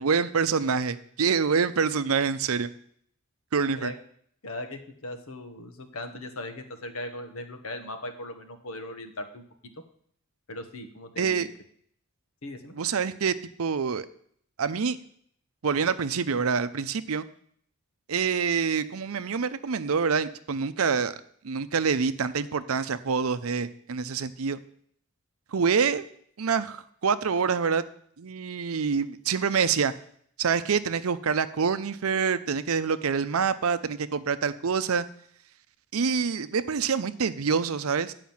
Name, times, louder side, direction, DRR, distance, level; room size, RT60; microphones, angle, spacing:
voice 1, 0.0-2.7 3.5-3.9 11.2-11.5 12.7-14.1 14.6-15.0 15.6-17.3 18.1-21.1 21.4-24.6 25.5-26.1 26.4-27.8 28.2-29.9 30.4-35.0 35.9-38.1, right 5 dB, 80° right, 12 dB, 0.6 m, -26 dB
voice 2, 4.4-9.7 10.5-11.5 12.4-12.7, left 1 dB, 75° left, 7 dB, 1.3 m, -38 dB
9.3 x 5.0 x 7.2 m, 0.62 s
head